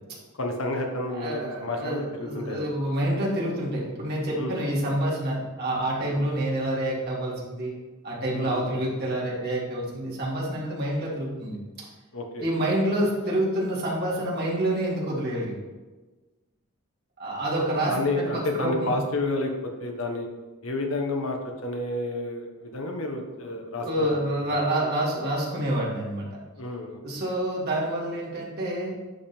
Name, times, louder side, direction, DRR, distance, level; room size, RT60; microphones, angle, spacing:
voice 1, 0.3-2.7 4.4-4.6 6.0-6.2 8.3-8.8 12.1-12.4 17.9-19.5 19.8-20.3 20.6-24.2 24.5-24.6 26.6-27.0, left 2 dB, 70° left, 3 dB, 1.2 m, -30 dB
voice 2, 1.1-7.8 8.0-11.6 12.4-15.5 17.2-19.0 23.8-26.3 27.0-28.9, right 1 dB, 50° right, -4 dB, 2.1 m, -27 dB
10.5 x 3.7 x 4.5 m, 1.2 s
head